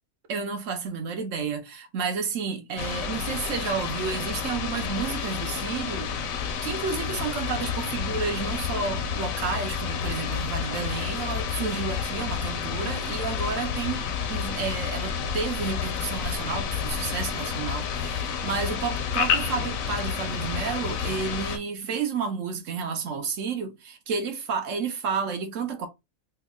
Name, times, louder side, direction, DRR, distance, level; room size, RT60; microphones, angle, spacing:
voice 1, 0.3-25.9, right 5 dB, 70° right, 1.1 m, -31 dB
sound 1, 2.8-21.6, left 7 dB, 85° left, 1.1 m, -30 dB
3.4 x 2.1 x 3.5 m
omnidirectional pair, 1.4 m